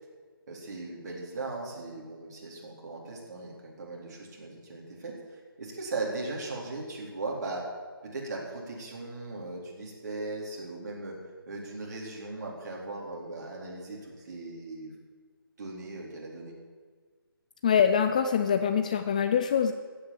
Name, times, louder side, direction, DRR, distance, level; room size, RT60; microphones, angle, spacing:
voice 1, 0.5-7.7 8.0-11.2 11.5-14.9 15.6-16.5, right 2 dB, 45° right, -2 dB, 4.0 m, -38 dB
voice 2, 17.6-19.7, left 7 dB, 20° left, 8 dB, 0.4 m, -24 dB
15.5 x 8.6 x 7.4 m, 1.5 s
figure-of-eight pair, 160°, 12 cm